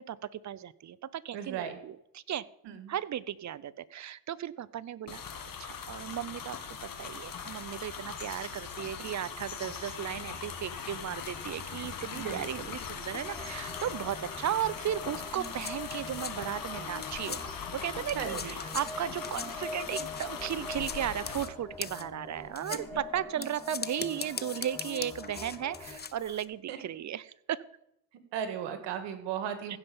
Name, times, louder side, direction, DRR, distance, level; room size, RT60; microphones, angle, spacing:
voice 1, 0.0-2.5 2.9-5.2 5.6-17.4 17.7-27.2 27.5-27.6 29.7-29.8, right 10 dB, 45° right, 19 dB, 0.6 m, -35 dB
voice 2, 1.3-1.8 2.6-2.9 12.1-12.8 18.1-18.5 22.7-22.8 26.7-26.8 28.3-29.8, right 8 dB, 85° right, 9 dB, 1.9 m, -36 dB
sound 1, 5.1-21.4, left 6 dB, 55° left, 2.2 m, -40 dB
sound 2, 13.2-26.0, left 2 dB, 5° left, 2.1 m, -44 dB
sound 3, 14.9-17.7 18.0-26.4, left 6 dB, 25° left, 0.8 m, -42 dB
15.5 x 5.5 x 7.1 m, 0.78 s
cardioid pair, 85°, 42 cm